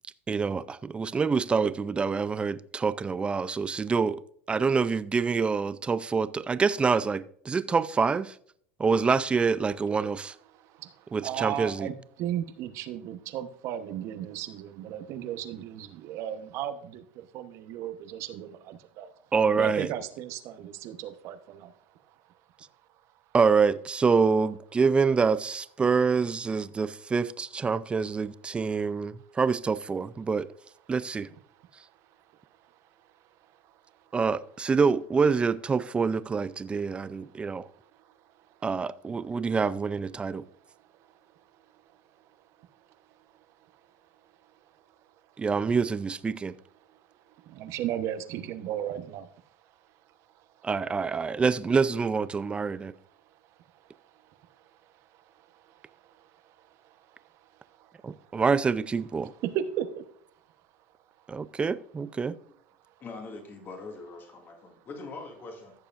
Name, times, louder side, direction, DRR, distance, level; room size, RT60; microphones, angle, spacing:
voice 1, 0.3-4.2 4.5-8.4 8.8-10.3 11.1-11.9 19.3-19.9 23.3-30.5 30.9-31.3 34.1-37.6 38.6-40.4 45.4-46.5 50.6-52.9 58.0-59.3 61.3-62.4, right 5 dB, 15° right, 0.5 m, -26 dB
voice 2, 10.5-19.1 19.6-21.7 31.6-31.7 33.6-33.7 37.3-38.1 38.4-38.5 41.1-41.2 42.2-42.3 42.6-42.7 46.9-47.0 47.3-49.4 50.4-50.5 53.8-53.9 54.2-54.7 55.1-58.3 59.4-60.1, right 11 dB, 50° right, 1.0 m, -36 dB
voice 3, 63.0-65.7, left 3 dB, 35° left, 2.3 m, -42 dB
15.5 x 6.8 x 2.5 m
hypercardioid pair, 105°, 6 cm